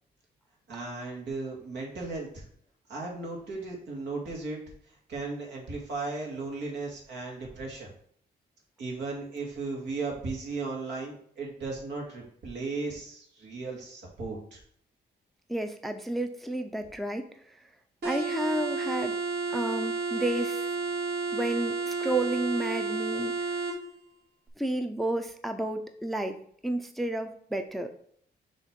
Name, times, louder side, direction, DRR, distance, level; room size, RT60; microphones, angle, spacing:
voice 1, 0.7-2.4 2.9-4.6 5.1-7.9 8.8-14.6, right 3 dB, 85° right, -1 dB, 2.1 m, -36 dB
voice 2, 15.5-17.2 18.0-19.2 19.5-20.7 21.3-23.4 24.6-27.9, right 1 dB, ahead, 7 dB, 0.4 m, -31 dB
sound 1, 18.0-23.8, right 4 dB, 65° right, 1.7 m, -31 dB
6.4 x 3.1 x 5.1 m, 0.63 s
cardioid pair, 130°, 18 cm